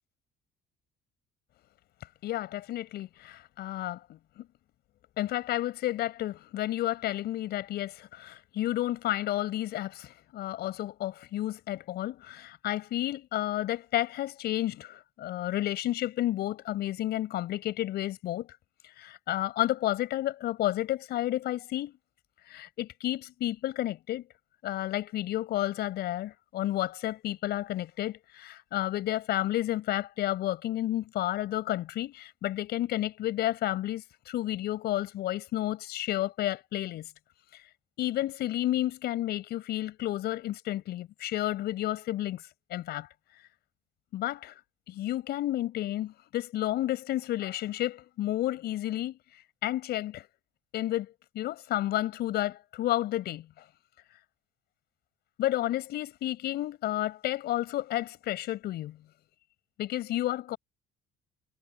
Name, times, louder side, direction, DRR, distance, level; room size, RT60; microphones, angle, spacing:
voice 1, 2.2-4.5 5.2-18.5 19.0-22.0 22.5-24.3 24.6-37.1 38.0-42.4 42.7-43.1 44.1-44.6 44.9-49.2 49.6-50.3 50.7-53.5 55.4-59.0 59.8-60.6, left 14 dB, 75° left, 6.0 m, -31 dB
cardioid pair, 110°, 17 cm